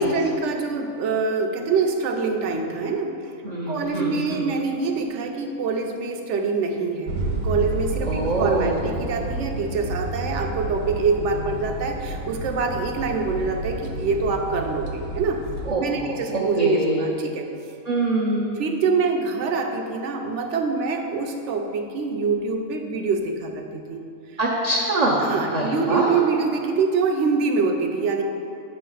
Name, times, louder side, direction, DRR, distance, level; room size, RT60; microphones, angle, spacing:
voice 1, 0.0-3.4 3.7-15.4 15.8-17.5 18.5-24.0 25.2-28.2, right 4 dB, 65° right, 4 dB, 0.9 m, -25 dB
voice 2, 3.4-4.5 8.1-8.8 15.7-17.0 17.9-18.6 24.4-26.1, right 2 dB, 45° right, -4 dB, 0.6 m, -24 dB
sound 1, 7.1-15.7, right 2 dB, 90° right, 1.1 m, -30 dB
8.2 x 3.2 x 5.5 m, 2.6 s
omnidirectional pair, 1.4 m